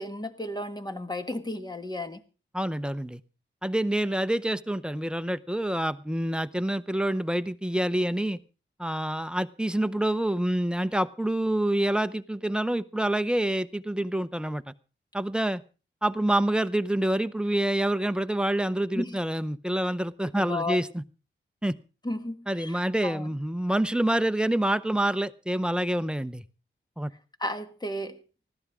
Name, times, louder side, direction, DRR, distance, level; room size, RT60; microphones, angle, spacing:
voice 1, 0.0-2.2 18.9-19.2 20.3-20.9 22.0-23.3 27.4-28.2, left 1 dB, 20° left, 1.5 m, -33 dB
voice 2, 2.5-3.2 3.6-8.4 8.8-14.6 15.1-15.6 16.0-21.0 21.6-21.8 22.5-26.4 27.0-27.1, right 1 dB, 5° right, 0.6 m, -27 dB
20.0 x 15.0 x 3.6 m
wide cardioid pair, 110°, 21 cm